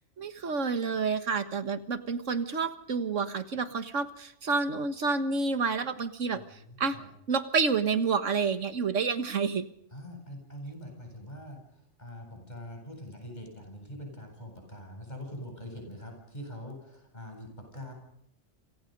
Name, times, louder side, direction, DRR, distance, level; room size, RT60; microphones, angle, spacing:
voice 1, 0.2-7.0 7.3-9.7, right 5 dB, 85° right, 10 dB, 1.8 m, -29 dB
voice 2, 6.3-7.1 9.9-17.9, equal, 35° left, 3 dB, 8.2 m, -44 dB
29.0 x 27.0 x 5.4 m, 0.75 s
omnidirectional pair, 1.2 m